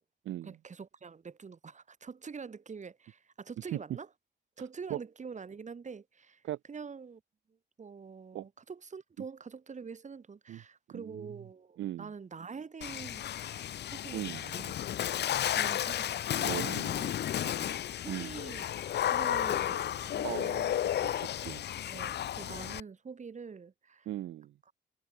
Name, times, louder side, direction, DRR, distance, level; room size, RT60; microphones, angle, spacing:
voice 1, 0.4-4.1 4.6-6.4 6.7-7.2 7.5-14.7 15.6-17.1 17.4-18.7 19.1-20.6 21.0-21.1 21.9-24.1 24.7-24.8, right 5 dB, 35° right, 4.6 m, -45 dB
voice 2, 10.9-11.3 11.8-12.1 14.1-14.4 16.5-17.1 18.1-18.3 20.2-21.7 24.1-24.5, right 13 dB, 70° right, 1.0 m, -38 dB
Water / Splash splatter, 12.8-22.8, left 11 dB, 60° left, 0.8 m, -33 dB
cardioid pair, 90°, 20 cm